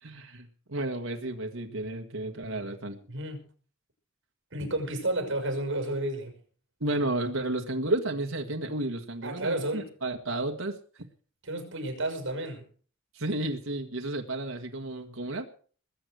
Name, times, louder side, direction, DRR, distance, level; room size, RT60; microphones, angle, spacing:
voice 1, 0.0-3.0 6.8-11.1 13.1-15.4, right 2 dB, 80° right, 4 dB, 1.7 m, -32 dB
voice 2, 3.1-3.4 4.5-6.4 9.2-9.9 11.4-12.6, right 1 dB, 65° right, 5 dB, 5.8 m, -31 dB
21.0 x 8.2 x 6.4 m, 0.43 s
head